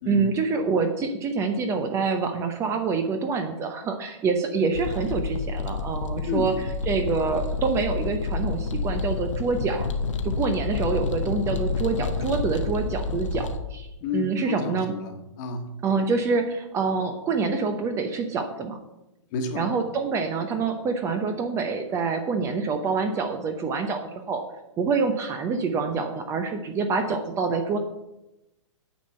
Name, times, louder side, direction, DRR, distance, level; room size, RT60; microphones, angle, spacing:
voice 1, 0.1-9.9 10.2-14.9 15.8-18.8 19.5-24.4 24.8-27.8, right 4 dB, 15° right, 7 dB, 0.7 m, -26 dB
sound 1, 4.7-13.6, left 4 dB, 75° left, 1.2 m, -29 dB
voice 2, 14.0-15.6 19.3-19.7, left 5 dB, 35° left, 6 dB, 1.5 m, -30 dB
9.2 x 5.1 x 7.7 m, 0.94 s
hypercardioid pair, 145°, 16 cm